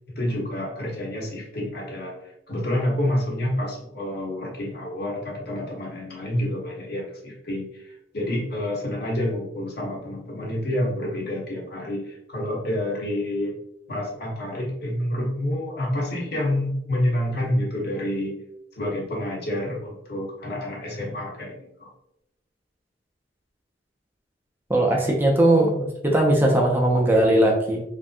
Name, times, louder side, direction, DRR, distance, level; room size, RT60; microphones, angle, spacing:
voice 1, 0.1-2.1 2.5-7.9 8.1-13.6 13.9-18.4 18.8-21.9, left 1 dB, 60° left, -2 dB, 1.0 m, -28 dB
voice 2, 24.7-27.8, right 1 dB, 10° right, -1 dB, 0.4 m, -19 dB
3.4 x 2.6 x 2.5 m, 0.83 s
head